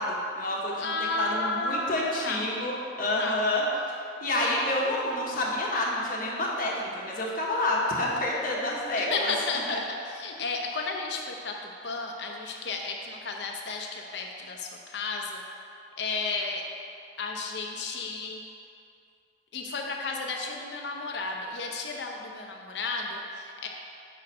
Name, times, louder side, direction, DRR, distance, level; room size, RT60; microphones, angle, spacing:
voice 1, 0.0-0.7 1.2-3.6 4.2-9.3 9.7-9.8, left 1 dB, 50° left, -3 dB, 1.0 m, -28 dB
voice 2, 0.8-2.4 3.2-3.4 9.0-15.4 16.0-16.6 17.2-18.4 19.5-23.7, left 3 dB, 75° left, 1 dB, 0.7 m, -33 dB
5.4 x 4.3 x 5.4 m, 2.5 s
head